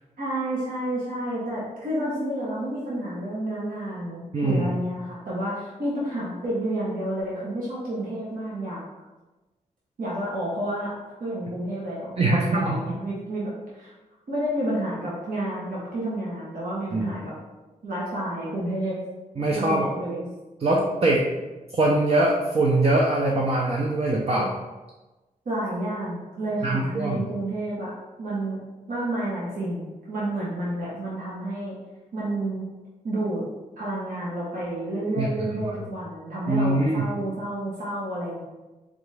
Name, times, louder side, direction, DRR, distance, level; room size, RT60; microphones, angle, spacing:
voice 1, 0.2-8.8 10.0-10.9 11.2-13.9 14.3-17.3 17.8-19.0 19.5-20.2 25.4-28.6 28.9-31.8 32.1-32.7 33.0-33.4 33.8-38.4, right 1 dB, 85° right, -8 dB, 1.3 m, -30 dB
voice 2, 4.3-4.7 12.2-13.0 16.9-17.1 19.4-19.9 20.6-21.3 21.7-24.6 26.6-27.2 35.2-35.8 36.5-37.1, right 2 dB, 45° right, -2 dB, 0.6 m, -23 dB
3.9 x 3.4 x 3.4 m, 1.1 s
wide cardioid pair, 105°, 14 cm